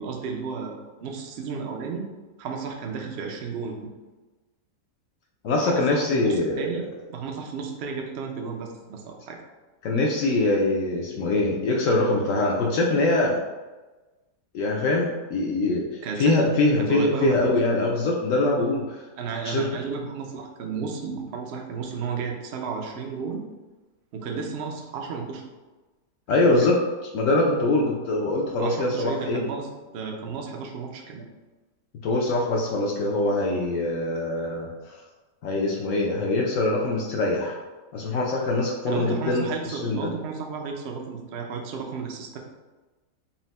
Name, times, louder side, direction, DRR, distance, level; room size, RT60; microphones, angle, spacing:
voice 1, 0.0-2.0 2.4-3.9 5.5-9.4 16.0-17.4 19.2-23.5 24.1-25.4 26.4-26.8 28.6-29.7 29.9-31.3 38.9-42.4, right 5 dB, 75° right, 1 dB, 0.5 m, -33 dB
voice 2, 5.4-6.8 9.8-13.4 14.5-15.9 16.2-19.0 19.4-19.7 26.3-26.8 27.1-29.4 32.0-35.0 35.4-37.6 37.9-40.1, left 2 dB, 75° left, -1 dB, 0.7 m, -23 dB
4.2 x 2.0 x 4.0 m, 1.2 s
omnidirectional pair, 1.8 m